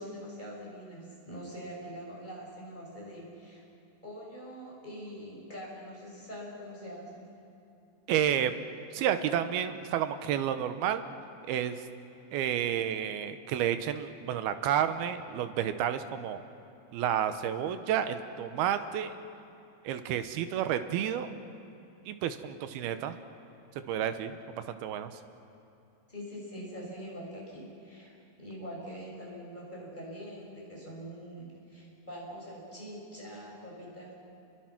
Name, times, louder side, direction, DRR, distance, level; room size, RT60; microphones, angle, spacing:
voice 1, 0.0-3.6 4.0-7.3 26.1-34.2, equal, 10° left, -4 dB, 6.4 m, -44 dB
voice 2, 8.1-8.5 8.9-11.0 11.5-11.8 12.3-16.4 16.9-19.1 19.8-21.3 22.1-23.2 23.9-25.2, right 9 dB, 90° right, 10 dB, 2.9 m, -30 dB
29.0 x 22.5 x 6.0 m, 2.8 s
omnidirectional pair, 4.3 m